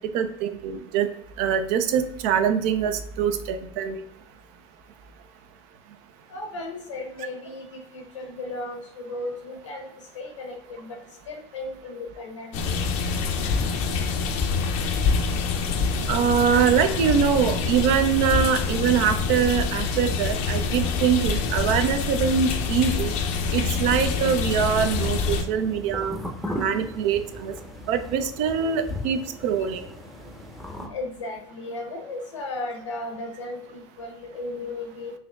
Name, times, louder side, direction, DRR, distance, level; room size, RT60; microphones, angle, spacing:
voice 1, 0.1-1.1 1.4-4.0 16.1-23.1 23.5-26.2 26.5-27.5 27.9-29.9, right 7 dB, 60° right, 8 dB, 0.5 m, -23 dB
voice 2, 6.3-9.9 10.1-11.0 11.3-12.8 26.5-26.7 30.9-35.1, left 2 dB, 90° left, 2 dB, 1.0 m, -35 dB
sound 1, 12.5-25.4, left 5 dB, 55° left, 0.6 m, -26 dB
sound 2, 25.4-30.9, left 1 dB, ahead, 0.7 m, -37 dB
4.1 x 2.9 x 2.3 m, 0.71 s
hypercardioid pair, 85°, 15 cm